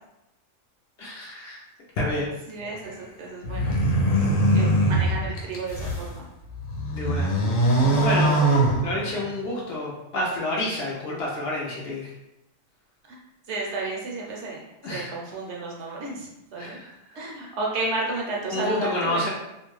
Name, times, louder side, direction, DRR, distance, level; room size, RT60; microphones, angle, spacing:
voice 1, 1.0-1.6 2.0-2.3 6.9-7.3 7.6-12.1 14.8-15.1 16.6-17.2 18.5-19.3, left 1 dB, 60° left, -4 dB, 0.7 m, -29 dB
voice 2, 2.5-3.8 4.5-6.3 13.5-14.6 14.9-16.8 17.1-19.3, right 2 dB, 70° right, -2 dB, 0.8 m, -32 dB
sound 1, 3.4-6.1 6.6-9.4, right 1 dB, 85° left, 1.0 m, -22 dB
2.5 x 2.2 x 3.0 m, 0.90 s
omnidirectional pair, 1.4 m